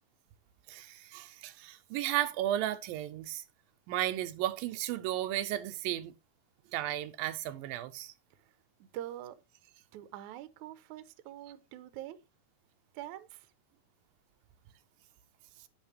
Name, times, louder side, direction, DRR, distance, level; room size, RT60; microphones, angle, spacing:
voice 1, 0.7-3.4 3.9-6.1 6.7-8.1, right 13 dB, 90° right, 2.5 m, -34 dB
voice 2, 8.8-9.4 9.9-12.2 12.9-13.5, right 13 dB, 70° right, 2.0 m, -44 dB
10.5 x 9.0 x 3.2 m
omnidirectional pair, 4.0 m